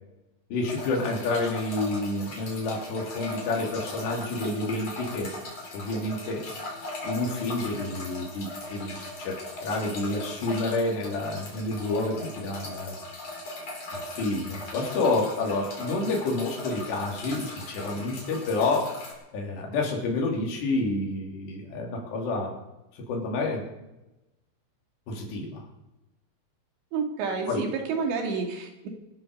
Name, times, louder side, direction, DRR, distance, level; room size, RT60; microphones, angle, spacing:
voice 1, 0.5-5.3 5.7-6.4 7.0-13.0 13.9-19.0 19.3-22.6 23.0-23.7 25.1-25.7 27.5-27.7, left 2 dB, 75° left, -1 dB, 5.2 m, -29 dB
sound 1, 0.6-19.1, left 2 dB, 35° left, 5.2 m, -39 dB
voice 2, 26.9-28.9, right 5 dB, 80° right, 2 dB, 4.6 m, -29 dB
24.0 x 8.2 x 6.7 m, 0.97 s
omnidirectional pair, 5.0 m